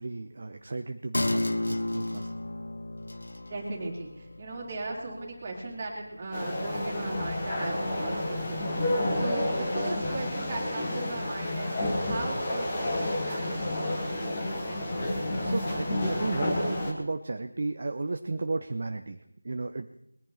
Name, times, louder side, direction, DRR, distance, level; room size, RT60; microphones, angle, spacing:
voice 1, 0.0-2.3 15.4-19.2 19.4-19.9, right 3 dB, 40° right, 7 dB, 0.9 m, -33 dB
sound 1, 1.1-8.2 8.5-8.6, left 1 dB, 60° left, 1.2 m, -35 dB
voice 2, 3.5-8.6 9.2-11.7 12.0-14.3, right 2 dB, 25° right, -2 dB, 3.7 m, -37 dB
sound 2, 6.3-16.9, left 1 dB, 20° left, 2.5 m, -30 dB
22.0 x 10.5 x 4.3 m, 0.79 s
figure-of-eight pair, 170°, 0 cm